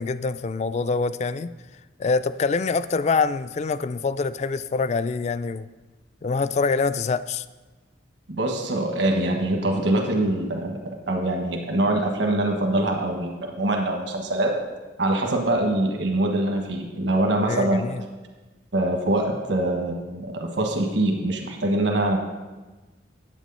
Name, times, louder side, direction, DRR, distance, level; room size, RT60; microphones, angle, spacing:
voice 1, 0.0-1.5 2.0-5.7 6.2-7.4 17.5-18.0, left 4 dB, 35° left, 14 dB, 0.3 m, -25 dB
voice 2, 8.3-14.5 15.0-17.9 18.7-22.2, right 1 dB, 70° right, 2 dB, 1.3 m, -24 dB
9.1 x 8.2 x 5.4 m, 1.2 s
head